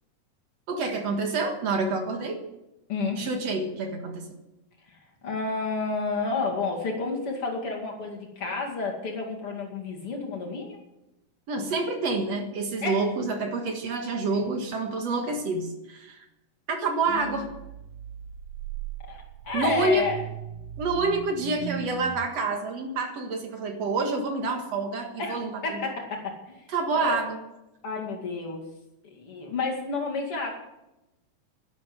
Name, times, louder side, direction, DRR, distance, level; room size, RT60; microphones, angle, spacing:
voice 1, 0.7-2.4 3.2-4.3 11.5-16.2 16.7-17.5 19.5-20.0 20.8-25.8 26.7-27.4, right 3 dB, 60° right, 4 dB, 2.6 m, -28 dB
voice 2, 2.9-3.2 4.9-5.0 5.2-10.8 12.8-13.1 17.1-17.4 19.1-20.2 25.2-26.7 26.9-27.2 27.8-28.6 29.0-30.5, left 4 dB, 50° left, 0 dB, 3.1 m, -31 dB
sound 1, 17.0-22.3, right 12 dB, 75° right, 2.0 m, -39 dB
12.0 x 11.5 x 7.8 m, 0.94 s
omnidirectional pair, 3.4 m